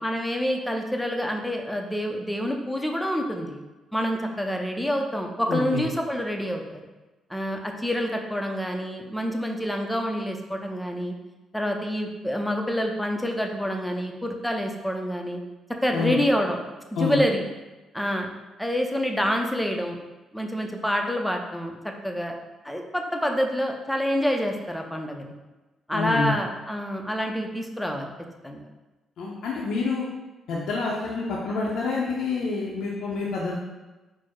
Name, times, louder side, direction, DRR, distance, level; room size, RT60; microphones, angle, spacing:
voice 1, 0.0-3.6 3.9-6.8 7.3-11.1 11.5-15.4 15.8-16.6 17.0-17.4 17.9-18.3 18.6-20.0 20.3-21.7 22.0-22.3 22.6-25.3 25.9-28.1 28.4-28.7, equal, 5° left, 2 dB, 0.5 m, -27 dB
voice 2, 5.5-5.8 15.9-16.2 17.0-17.2 25.9-26.4 29.2-30.0 30.5-33.6, left 4 dB, 75° left, -4 dB, 0.6 m, -27 dB
4.5 x 2.0 x 4.4 m, 1.1 s
cardioid pair, 90°, 0 cm